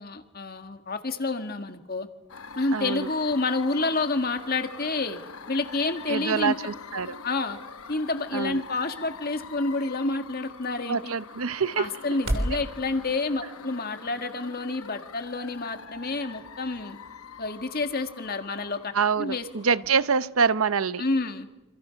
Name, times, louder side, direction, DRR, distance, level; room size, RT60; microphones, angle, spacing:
voice 1, 0.0-2.1 2.6-5.2 5.5-6.6 7.2-7.6 7.9-11.1 11.8-17.0 17.4-18.9 19.2-19.5 21.0-21.5, left 3 dB, 45° left, 1.8 m, -29 dB
sound 1, 2.3-20.3, left 5 dB, 85° left, 1.0 m, -44 dB
voice 2, 2.7-3.1 6.1-7.2 8.3-8.6 10.9-11.9 12.5-12.6 18.9-21.0, right 6 dB, 80° right, 0.8 m, -25 dB
sound 2, 6.4-12.6, right 1 dB, 65° right, 2.8 m, -38 dB
27.5 x 26.5 x 5.9 m
head